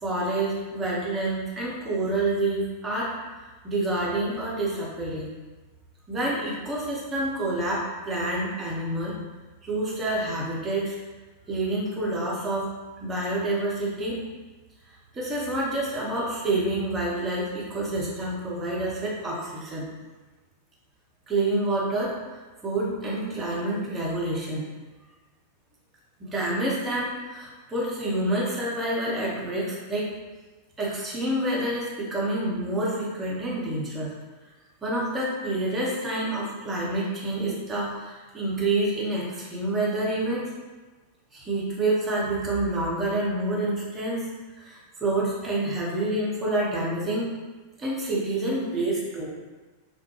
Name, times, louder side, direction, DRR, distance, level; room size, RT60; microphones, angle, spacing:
voice 1, 0.0-3.1 3.6-5.3 6.1-9.2 9.6-10.9 11.5-12.7 13.0-14.2 15.1-19.9 21.3-22.1 22.6-24.6 26.2-30.1 30.8-34.1 34.8-40.5 41.3-44.3 44.6-47.3 47.8-49.3, right 1 dB, 20° right, -5 dB, 0.7 m, -28 dB
2.3 x 2.1 x 2.9 m, 1.3 s
figure-of-eight pair, 90°, 0 cm